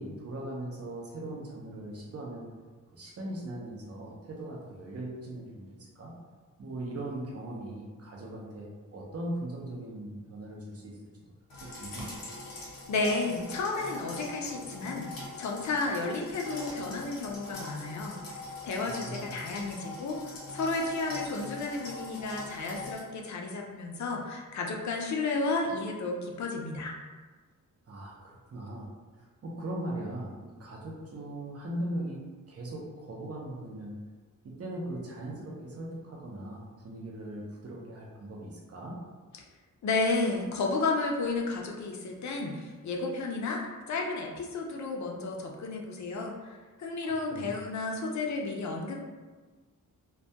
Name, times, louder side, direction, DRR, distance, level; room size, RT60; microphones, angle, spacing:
voice 1, 0.0-2.5 2.9-6.1 6.6-11.0 11.6-12.1 18.9-19.4 27.9-28.9 29.2-32.2 32.5-33.9 34.4-39.0 47.0-47.5, right 1 dB, 45° right, -2 dB, 0.5 m, -39 dB
sound 1, 11.5-23.0, left 2 dB, 90° left, 0.8 m, -43 dB
voice 2, 12.6-18.4 18.6-26.9 39.8-43.6 43.9-49.0, left 3 dB, 55° left, 0 dB, 0.4 m, -32 dB
2.2 x 2.2 x 2.7 m, 1.3 s
wide cardioid pair, 150°, 34 cm